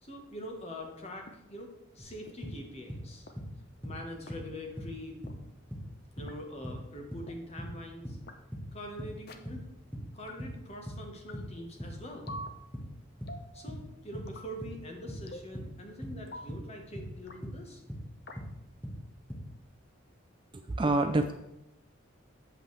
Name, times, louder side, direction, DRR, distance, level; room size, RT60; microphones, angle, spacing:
voice 1, 0.0-3.3 3.8-5.2 6.2-8.2 8.7-9.6 10.1-12.3 13.5-17.8, equal, 30° left, 2 dB, 1.2 m, -44 dB
sound 1, 1.3-1.4 2.3-2.4 3.3-3.4 4.3-4.4 5.3-5.4 6.3-6.4 7.3-7.4 8.3-8.4 9.3-9.4 10.3-10.4 11.3-11.4 12.3-12.5 13.3-13.5 14.3-14.5 15.3-15.5 16.3-16.5 17.3-17.4 18.3-18.4, left 1 dB, 50° left, 0.7 m, -44 dB
sound 2, 2.0-3.1 3.4-4.5 4.8-10.6 10.9-18.1 18.4-19.5, equal, 5° left, 1.1 m, -41 dB
voice 2, 20.5-21.3, right 2 dB, 25° right, 6 dB, 0.3 m, -27 dB
8.1 x 7.4 x 3.3 m, 0.89 s
head